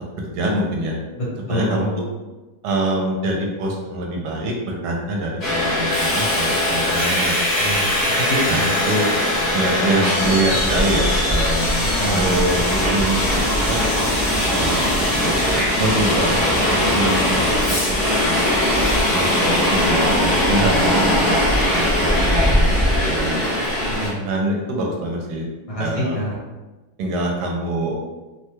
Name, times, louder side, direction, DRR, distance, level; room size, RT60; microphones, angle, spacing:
voice 1, 0.2-1.0 1.5-2.0 2.6-7.4 8.4-9.0 9.5-13.8 14.5-15.1 15.8-17.8 18.2-18.6 19.1-22.8 23.1-23.4 24.2-25.4 25.8-26.2 27.0-28.0, right 1 dB, 75° right, -1 dB, 1.2 m, -25 dB
voice 2, 1.2-2.0 7.6-8.8 11.8-12.3 23.9-24.2 25.7-26.3, equal, 70° left, -6 dB, 1.8 m, -26 dB
Subway metro underground, 5.4-24.1, left 1 dB, 30° left, 0.8 m, -20 dB
3.4 x 2.2 x 3.0 m, 1.2 s
omnidirectional pair, 1.8 m